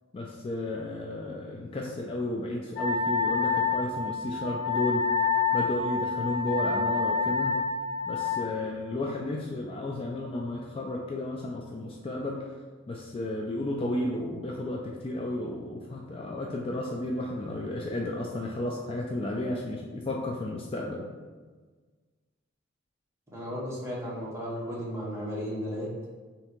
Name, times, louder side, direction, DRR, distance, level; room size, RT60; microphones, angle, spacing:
voice 1, 0.1-5.1 5.5-7.6 8.1-12.6 12.9-21.1, left 1 dB, 30° left, -1 dB, 0.3 m, -33 dB
Wind instrument woodwind instrument, 2.8-8.4, left 5 dB, 50° left, 0.8 m, -28 dB
voice 2, 23.3-26.1, equal, 15° right, -7 dB, 1.1 m, -34 dB
3.3 x 2.8 x 4.3 m, 1.4 s
head